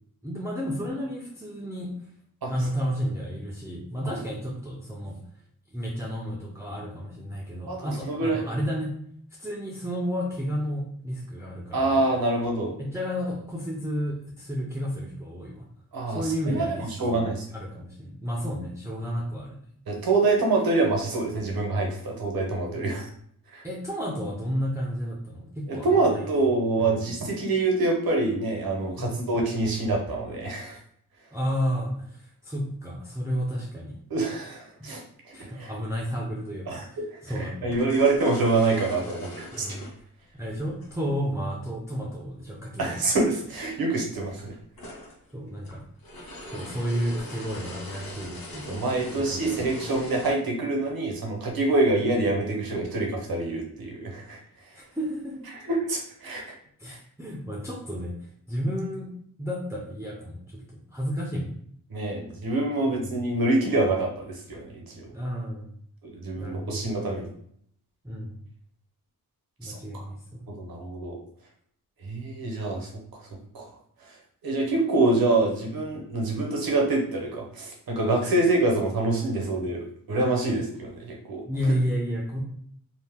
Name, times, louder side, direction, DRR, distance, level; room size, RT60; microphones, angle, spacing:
voice 1, 0.2-2.0 2.5-5.2 5.7-9.0 9.4-12.1 12.8-15.7 16.1-17.2 17.5-19.6 23.6-26.3 26.8-27.0 29.0-29.2 31.3-34.0 34.8-34.9 35.3-38.0 39.5-39.8 40.3-43.0 45.3-45.8 46.5-48.7 49.1-49.7 52.0-52.1 54.7-55.7 56.8-59.1 59.4-61.6 62.9-63.0 65.1-65.7 66.4-66.9 68.0-68.4 69.6-70.5 81.4-82.4, equal, 10° right, -4 dB, 0.4 m, -32 dB
voice 2, 7.7-8.6 11.7-12.7 15.9-17.3 19.9-23.1 23.5-23.6 25.7-30.8 34.1-35.7 36.7-36.8 37.1-39.7 42.8-44.6 48.7-54.4 55.7-56.5 56.9-57.0 61.9-65.1 66.0-67.3 69.6-70.1 70.5-71.2 72.0-73.7 74.0-74.2 74.4-81.4, right 2 dB, 90° right, 0 dB, 0.8 m, -26 dB
sound 1, 37.6-41.0 42.8-42.9 43.1-43.2 44.0-50.3, left 1 dB, 90° left, 0.8 m, -41 dB
2.7 x 2.1 x 3.4 m, 0.66 s
wide cardioid pair, 95°, 35 cm